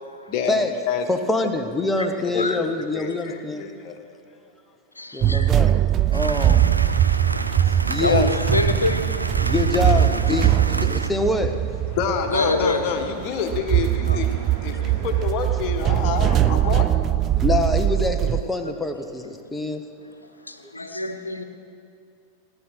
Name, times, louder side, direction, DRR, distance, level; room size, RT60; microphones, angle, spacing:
voice 1, 0.3-1.1 2.3-2.5 2.9-3.9 11.9-17.0, left 6 dB, 40° left, 4 dB, 1.7 m, -28 dB
voice 2, 1.1-3.7 5.1-5.8 6.1-6.8 7.9-8.3 9.4-11.6 17.4-19.8, left 2 dB, 5° left, 6 dB, 1.2 m, -25 dB
voice 3, 5.0-5.5 8.0-9.1 12.1-13.0 14.1-14.2 16.2-16.8 18.4-18.7 20.4-21.4, left 2 dB, 80° left, 8 dB, 1.0 m, -26 dB
sound 1, 5.2-18.4, right 12 dB, 30° right, 0.4 m, -21 dB
sound 2, 6.1-11.1, right 2 dB, 85° right, 0.6 m, -29 dB
sound 3, 7.1-15.9, right 2 dB, 55° right, 4.0 m, -42 dB
18.0 x 10.5 x 6.4 m, 2.5 s
figure-of-eight pair, 90°, 0 cm